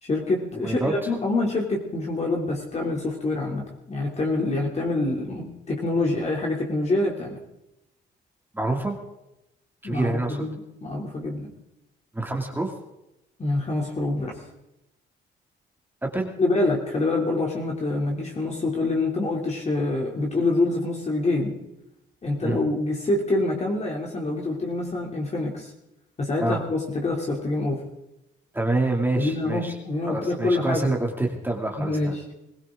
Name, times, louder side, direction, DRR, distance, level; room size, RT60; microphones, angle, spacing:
voice 1, 0.0-7.4 9.8-11.5 13.4-14.4 16.4-21.6 22.2-25.7 26.2-27.8 29.2-31.0 31.8-32.3, left 2 dB, 35° left, -1 dB, 3.1 m, -26 dB
voice 2, 0.6-1.1 8.5-9.0 9.8-10.4 12.1-12.7 16.0-16.3 22.4-22.6 26.4-26.6 28.5-29.7 30.1-32.3, right 2 dB, 10° right, 1 dB, 2.5 m, -27 dB
21.5 x 16.5 x 3.8 m, 0.91 s
cardioid pair, 90°, 20 cm